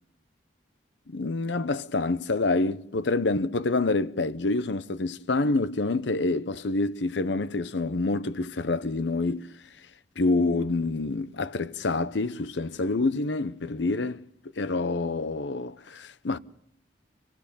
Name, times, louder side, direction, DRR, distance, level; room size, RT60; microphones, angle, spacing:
voice 1, 1.1-9.5 10.2-14.3 14.6-16.4, left 3 dB, 70° left, 0.8 m, -27 dB
27.0 x 16.5 x 6.9 m
head